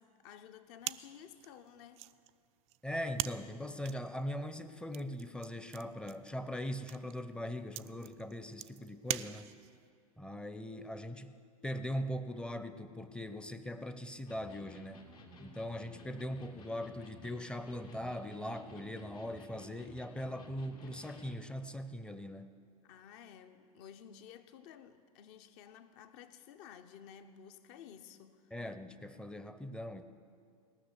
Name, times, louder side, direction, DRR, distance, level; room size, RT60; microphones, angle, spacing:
voice 1, 0.0-2.1 22.8-28.5, left 8 dB, 50° left, 10 dB, 0.8 m, -54 dB
sound 1, 0.8-9.9, right 16 dB, 35° right, 0.4 m, -44 dB
voice 2, 2.8-9.5 10.2-11.3 11.6-15.0 15.4-22.6 28.5-30.0, equal, 5° left, 10 dB, 0.6 m, -40 dB
Electric guitar, 14.3-21.6, right 1 dB, 75° left, 2.5 m, -55 dB
18.5 x 6.3 x 8.3 m, 2.3 s
figure-of-eight pair, 85°, 19 cm